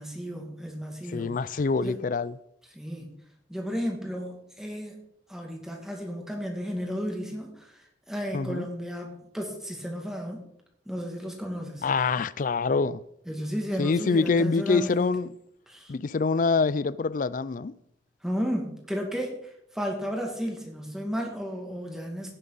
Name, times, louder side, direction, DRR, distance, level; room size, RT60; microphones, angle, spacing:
voice 1, 0.0-1.4 1.8-2.0 2.7-3.1 3.5-5.0 5.3-7.7 8.1-10.4 10.9-11.8 13.3-15.1 15.7-15.9 18.2-19.4 19.7-22.3, equal, 5° right, 2.2 m, -33 dB
voice 2, 1.1-2.4 8.3-8.7 11.8-13.0 13.8-15.3 15.9-17.8, left 4 dB, 45° left, 0.4 m, -25 dB
16.5 x 7.3 x 4.0 m
head